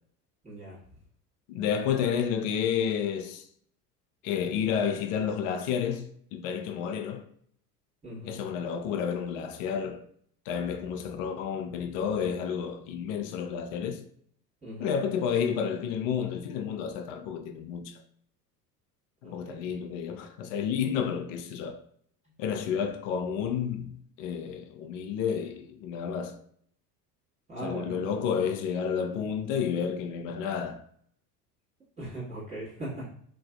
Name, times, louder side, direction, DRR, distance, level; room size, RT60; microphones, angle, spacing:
voice 1, 0.4-0.8 8.0-8.4 14.6-15.0 19.2-19.7 27.5-28.1 32.0-33.1, right 1 dB, 15° right, 1.3 m, -39 dB
voice 2, 1.5-3.4 4.2-7.2 8.2-10.0 10.5-14.0 14.8-18.0 19.2-21.8 22.4-26.4 27.6-30.8, left 7 dB, 55° left, 0.6 m, -30 dB
3.3 x 2.6 x 2.2 m
figure-of-eight pair, 70°, 48 cm